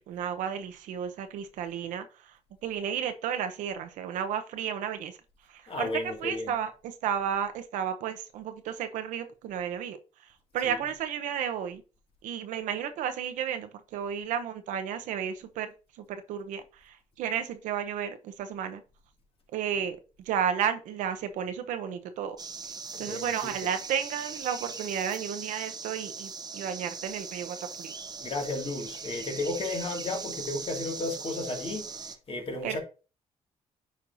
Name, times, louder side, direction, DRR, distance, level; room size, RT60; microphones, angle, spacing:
voice 1, 0.0-2.3 2.6-5.2 5.5-5.9 6.2-6.7 7.0-10.0 10.5-11.8 12.2-15.7 16.1-18.8 19.5-20.0 20.3-22.4 23.0-27.9 32.6-32.8, right 8 dB, 85° right, 0.8 m, -32 dB
voice 2, 5.7-6.5 10.6-10.8 22.9-23.5 28.2-32.8, left 2 dB, 45° left, 2.2 m, -34 dB
sound 1, 22.4-32.2, right 5 dB, 30° right, 0.8 m, -40 dB
9.3 x 4.6 x 2.6 m
cardioid pair, 80°, 13 cm